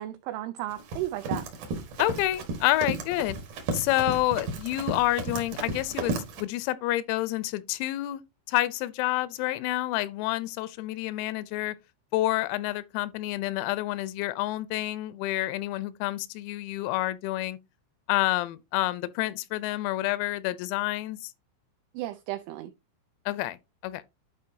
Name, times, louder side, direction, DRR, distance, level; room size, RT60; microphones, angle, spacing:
voice 1, 0.0-1.5 21.9-22.7, right 15 dB, 85° right, 2.6 m, -34 dB
Run, 0.7-6.4, right 3 dB, 70° right, 1.9 m, -34 dB
voice 2, 2.0-3.4 3.7-8.2 8.5-11.8 12.1-17.6 18.1-21.3 23.3-23.6 23.8-24.0, left 16 dB, 85° left, 3.4 m, -28 dB
11.5 x 4.4 x 2.7 m
omnidirectional pair, 6.0 m